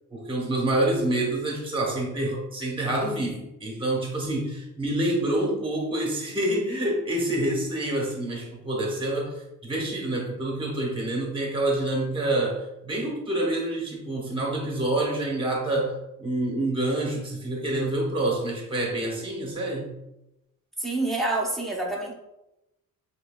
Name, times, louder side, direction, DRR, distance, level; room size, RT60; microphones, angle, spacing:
voice 1, 0.1-20.0, right 1 dB, 15° right, -1 dB, 1.0 m, -27 dB
voice 2, 20.8-22.1, right 2 dB, ahead, -3 dB, 0.6 m, -27 dB
6.4 x 2.9 x 2.2 m, 0.91 s
cardioid pair, 170°, 33 cm